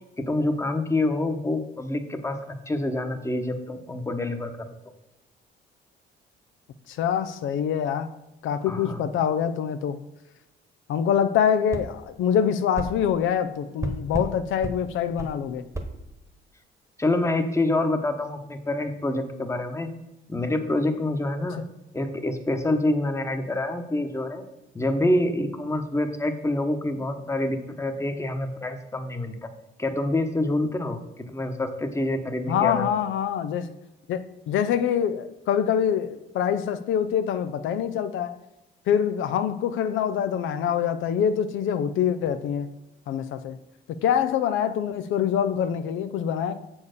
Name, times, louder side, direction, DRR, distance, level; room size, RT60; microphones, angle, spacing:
voice 1, 0.2-2.4 2.7-4.7 8.7-9.1 17.0-19.9 20.3-21.6 21.9-24.4 24.7-29.5 29.8-32.8, left 2 dB, 15° left, 7 dB, 1.0 m, -26 dB
voice 2, 6.9-8.1 8.4-10.0 10.9-15.6 32.5-33.7 34.1-38.4 38.9-42.7 43.1-43.6 43.9-46.5, left 8 dB, 80° left, 10 dB, 0.5 m, -25 dB
sound 1, 11.7-11.9 12.7-12.9 13.8-14.3 14.6-14.8 15.2-15.3 15.7-15.9, right 1 dB, 15° right, 1.2 m, -30 dB
7.1 x 4.4 x 6.6 m, 0.96 s
cardioid pair, 90°, 20 cm